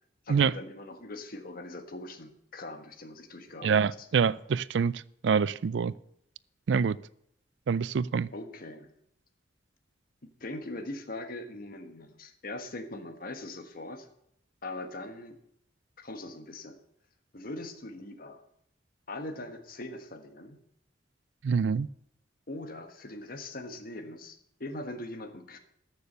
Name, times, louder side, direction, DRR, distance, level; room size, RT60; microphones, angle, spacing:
voice 1, 0.2-4.1 8.3-8.9 10.2-14.1 14.6-15.4 16.0-16.8 17.3-18.4 19.1-20.6 22.5-25.6, left 2 dB, 50° left, 1.4 m, -41 dB
voice 2, 3.6-4.9 5.2-5.9 6.7-7.0 7.7-8.3 21.4-21.9, right 6 dB, 70° right, 0.4 m, -25 dB
13.5 x 7.1 x 6.7 m
head